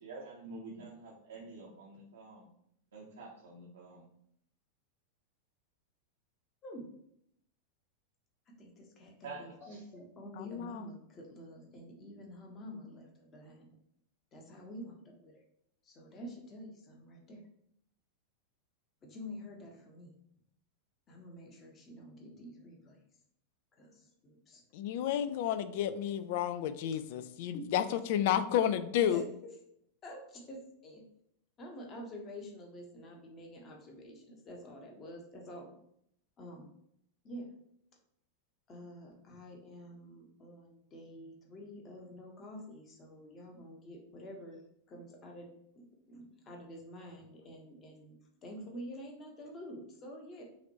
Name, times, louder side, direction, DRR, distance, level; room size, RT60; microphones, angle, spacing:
voice 1, 0.0-2.5 2.9-3.9 9.2-9.8, right 3 dB, 65° right, -4 dB, 0.8 m, -48 dB
voice 2, 8.5-13.7 14.3-15.4 15.8-17.4 19.0-20.2 21.1-23.0 23.7-24.6 27.5-27.7 29.1-29.3 30.0-31.0 31.6-35.7 36.4-36.7 37.2-37.5 38.7-44.6 44.9-50.4, equal, 30° left, 0 dB, 1.0 m, -48 dB
voice 3, 10.4-10.8 24.7-27.8 28.1-29.2, left 10 dB, 50° left, 12 dB, 0.3 m, -31 dB
5.8 x 2.6 x 2.9 m, 0.72 s
figure-of-eight pair, 90°, 0 cm